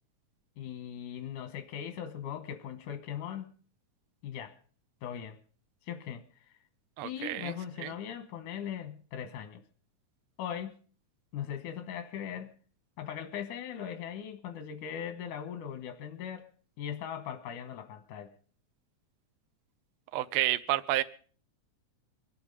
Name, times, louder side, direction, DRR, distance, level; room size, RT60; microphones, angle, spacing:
voice 1, 0.6-3.5 4.2-4.6 5.0-5.4 5.9-6.2 7.0-9.6 10.4-10.7 11.3-12.5 13.0-16.5 16.8-18.3, left 9 dB, 90° left, 2.6 m, -39 dB
voice 2, 7.0-7.9 20.1-21.0, right 15 dB, 75° right, 1.3 m, -30 dB
24.0 x 8.7 x 5.4 m
omnidirectional pair, 3.5 m